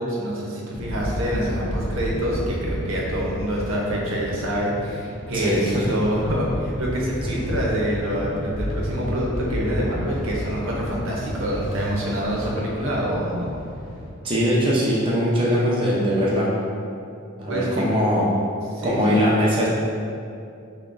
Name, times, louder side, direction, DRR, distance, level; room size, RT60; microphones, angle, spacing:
voice 1, 0.0-13.5 17.5-17.8 18.7-19.2, equal, 70° right, -3 dB, 0.7 m, -26 dB
sound 1, 0.7-14.1, equal, 15° left, 1.0 m, -31 dB
voice 2, 5.3-5.8 14.2-16.5 17.4-18.3 18.8-19.7, equal, 25° right, -6 dB, 0.5 m, -21 dB
5.7 x 2.2 x 2.5 m, 2.4 s
head